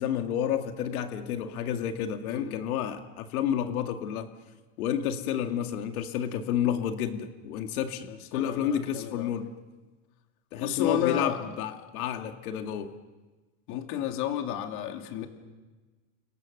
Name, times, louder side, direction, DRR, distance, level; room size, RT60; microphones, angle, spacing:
voice 1, 0.0-4.3 4.8-9.5 10.5-12.9, left 9 dB, 85° left, 5 dB, 2.2 m, -30 dB
voice 2, 8.1-9.3 10.6-11.4 13.7-15.3, left 11 dB, 45° left, 5 dB, 2.8 m, -32 dB
30.0 x 26.0 x 6.6 m, 1.3 s
supercardioid pair, 165°, 42 cm